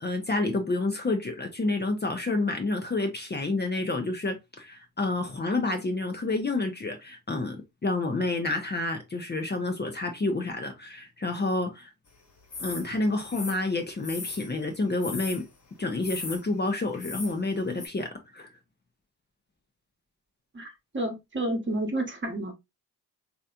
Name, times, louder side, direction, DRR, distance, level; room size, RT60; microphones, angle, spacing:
voice 1, 0.0-11.9 12.6-15.4 15.8-18.5, left 2 dB, 25° left, 0.8 m, -29 dB
sound 1, 12.5-12.9 13.2-14.5 15.0-15.5 16.0-16.4 16.9-17.4 17.8-17.9, left 3 dB, 55° left, 1.7 m, -38 dB
voice 2, 20.9-22.5, right 1 dB, 30° right, 1.2 m, -30 dB
3.2 x 2.9 x 2.4 m
supercardioid pair, 50°, 40 cm